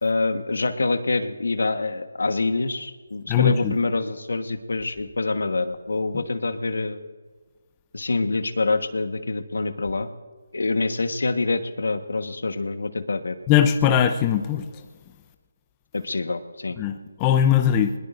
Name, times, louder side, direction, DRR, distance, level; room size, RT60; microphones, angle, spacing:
voice 1, 0.0-7.0 7.9-10.1 10.5-13.4 15.9-16.8, left 3 dB, 75° left, 9 dB, 1.3 m, -26 dB
voice 2, 3.3-3.8 13.5-14.7 16.8-17.9, left 9 dB, 15° left, 7 dB, 0.6 m, -20 dB
21.5 x 20.5 x 2.6 m, 1.4 s
figure-of-eight pair, 165°, 0 cm